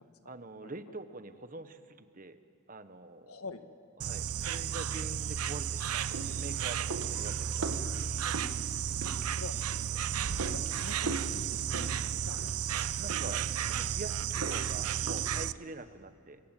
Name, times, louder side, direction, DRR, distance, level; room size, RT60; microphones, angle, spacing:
voice 1, 0.2-2.4 2.7-3.4 4.0-7.7 13.0-16.4, right 2 dB, 35° right, 10 dB, 1.2 m, -45 dB
voice 2, 3.3-3.6 9.0-9.5 10.2-12.6 13.5-13.6, left 3 dB, 85° left, 8 dB, 1.7 m, -46 dB
Insect, 4.0-15.5, right 9 dB, 85° right, 0.6 m, -33 dB
sound 1, 5.8-15.6, right 2 dB, 70° right, 1.7 m, -42 dB
26.0 x 23.5 x 9.1 m, 2.3 s
head